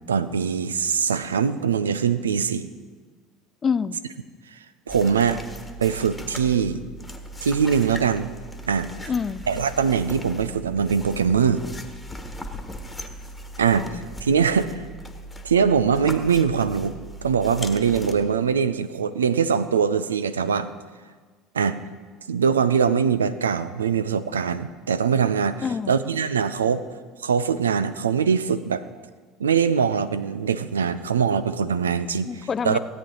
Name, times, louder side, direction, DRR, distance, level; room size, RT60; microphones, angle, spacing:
voice 1, 0.1-2.7 4.5-4.6 4.9-5.4 5.8-6.8 7.4-8.3 8.7-8.9 9.5-11.7 13.6-14.8 15.4-20.7 21.5-21.8 22.3-26.8 27.2-28.8 29.4-32.3 32.6-32.8, right 6 dB, 85° right, 13 dB, 0.4 m, -22 dB
voice 2, 3.6-4.0 9.1-9.4 13.7-14.0 25.6-25.9 32.2-32.8, left 6 dB, 35° left, 17 dB, 0.4 m, -26 dB
sound 1, 4.9-18.1, equal, 10° left, 1.4 m, -38 dB
16.5 x 9.0 x 3.9 m, 1.5 s
hypercardioid pair, 70°, 0 cm